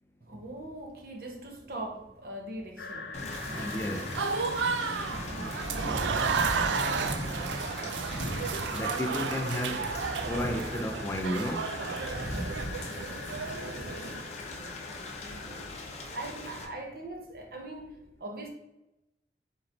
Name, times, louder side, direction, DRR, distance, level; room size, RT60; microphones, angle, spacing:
voice 1, 0.2-3.2 5.0-6.1 6.4-7.4 13.5-15.7 16.1-18.5, right 1 dB, 55° right, 1 dB, 0.8 m, -43 dB
sound 1, 2.8-15.7, left 5 dB, 75° left, 0.5 m, -44 dB
Thunder / Rain, 3.1-16.6, left 1 dB, 40° left, 0.7 m, -38 dB
Applause / Crowd, 3.3-14.2, right 5 dB, 80° right, 0.4 m, -33 dB
voice 2, 3.5-4.1 8.7-9.9 10.3-11.7, equal, 15° left, 3 dB, 0.3 m, -33 dB
4.4 x 3.0 x 3.8 m, 0.94 s
head